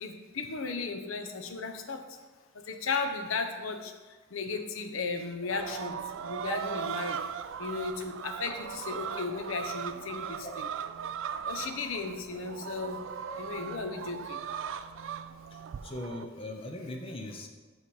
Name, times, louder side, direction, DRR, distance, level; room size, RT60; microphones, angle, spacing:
voice 1, 0.0-2.0 2.5-3.9 4.3-7.2 7.6-10.7 11.5-13.0 13.3-14.4, left 4 dB, 90° left, 6 dB, 0.7 m, -35 dB
sound 1, 5.5-16.3, right 7 dB, 70° right, 0.3 m, -38 dB
voice 2, 15.5-17.5, left 1 dB, 30° left, 3 dB, 0.6 m, -40 dB
5.9 x 5.6 x 4.7 m, 1.3 s
head